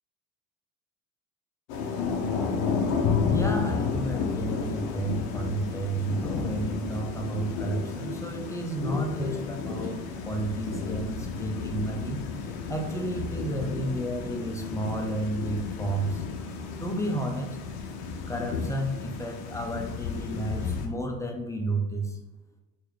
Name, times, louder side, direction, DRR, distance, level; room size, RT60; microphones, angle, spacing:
Thunder / Rain, 1.7-20.9, left 5 dB, 65° left, 0.9 m, -32 dB
voice 1, 3.3-12.2 12.7-16.2 16.8-17.6 18.3-22.2, right 1 dB, 5° left, 1 dB, 0.8 m, -32 dB
4.7 x 3.2 x 3.3 m, 1.1 s
hypercardioid pair, 65°, 49 cm